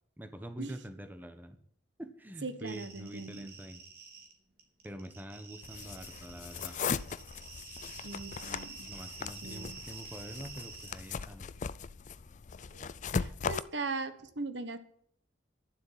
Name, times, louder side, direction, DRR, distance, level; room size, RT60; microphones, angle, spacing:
voice 1, 0.2-1.6 2.0-3.8 4.8-6.8 8.9-11.5, right 1 dB, 10° right, 8 dB, 1.2 m, -45 dB
voice 2, 2.4-3.5 8.0-8.9 9.4-9.8 12.7-12.9 13.2-14.8, right 3 dB, 80° right, 11 dB, 1.3 m, -39 dB
sound 1, 2.7-4.3 4.6-11.2, right 5 dB, 55° right, 3.3 m, -49 dB
sound 2, 5.6-13.6, left 5 dB, 45° left, 0.4 m, -38 dB
12.0 x 7.6 x 9.1 m, 0.64 s
head